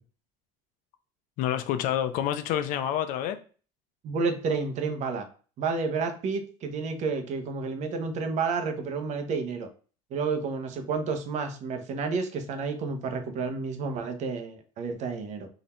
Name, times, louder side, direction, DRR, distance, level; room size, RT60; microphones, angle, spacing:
voice 1, 1.4-3.4, left 10 dB, 65° left, 0.6 m, -28 dB
voice 2, 4.0-5.3 5.6-9.7 10.1-15.5, right 4 dB, 55° right, 1.0 m, -30 dB
4.0 x 2.8 x 4.3 m
cardioid pair, 115°, 14 cm